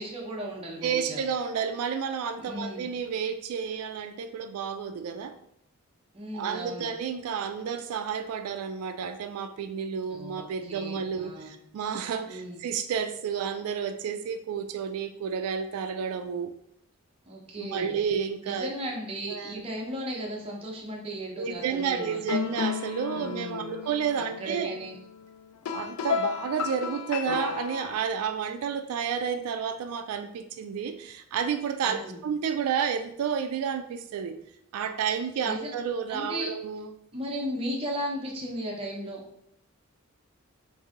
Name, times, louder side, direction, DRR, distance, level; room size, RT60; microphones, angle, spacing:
voice 1, 0.0-1.2 2.4-2.9 6.1-6.9 10.1-11.5 12.3-12.6 17.3-18.0 18.4-22.4 23.1-23.7 24.2-24.9 31.8-32.2 35.4-35.7 36.1-36.6 37.1-39.5, equal, 25° right, -2 dB, 0.7 m, -36 dB
voice 2, 0.8-5.4 6.3-16.5 17.6-18.7 19.3-19.6 21.4-24.8 25.7-34.4 34.7-36.9, right 7 dB, 85° right, 7 dB, 0.3 m, -31 dB
sound 1, 22.0-28.0, left 7 dB, 85° left, 0.3 m, -33 dB
3.0 x 2.6 x 3.6 m, 0.72 s
head